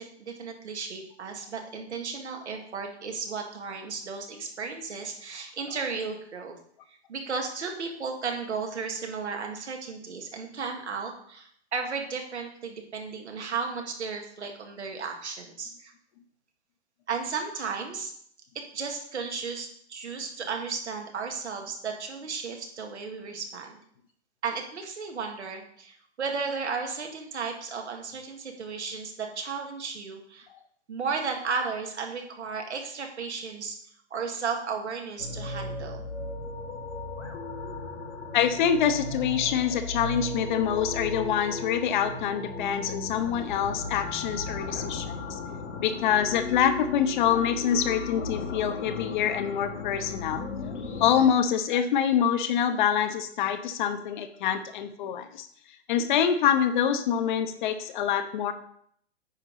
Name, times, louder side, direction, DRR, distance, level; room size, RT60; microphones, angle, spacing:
voice 1, 0.0-6.6 6.9-15.9 17.1-18.1 18.5-23.8 24.4-30.5 30.9-33.8 34.1-36.0, right 5 dB, 80° right, 3 dB, 1.9 m, -34 dB
sound 1, 35.2-51.3, left 3 dB, 90° left, 1.7 m, -36 dB
voice 2, 38.3-45.4 45.8-50.4 51.0-55.5 55.9-58.5, left 8 dB, 45° left, 9 dB, 0.9 m, -25 dB
9.3 x 5.3 x 4.0 m, 0.64 s
hypercardioid pair, 130°, 34 cm